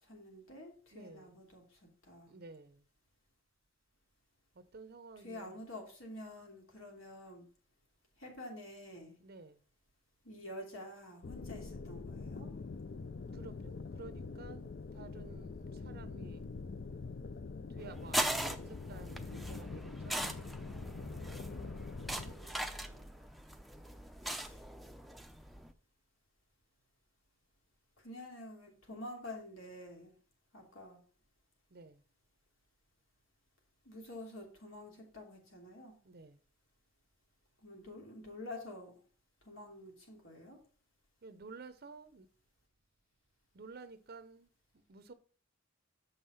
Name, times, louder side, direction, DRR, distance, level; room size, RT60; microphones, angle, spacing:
voice 1, 0.0-2.3 5.2-7.5 8.2-9.2 10.2-12.5 22.2-23.3 24.2-24.6 28.0-30.1 30.5-31.0 33.8-36.0 37.6-39.0 39.4-40.6, left 1 dB, 75° left, 3.0 m, -49 dB
voice 2, 0.9-1.4 2.3-2.9 4.5-5.6 9.2-9.6 13.3-16.5 17.7-20.2 31.7-32.0 36.0-36.4 41.2-42.3 43.5-45.1, right 3 dB, 50° right, 0.6 m, -53 dB
sound 1, 11.2-22.3, left 4 dB, 50° left, 0.5 m, -44 dB
sound 2, 17.8-25.7, right 1 dB, ahead, 0.5 m, -40 dB
7.0 x 5.6 x 5.5 m
head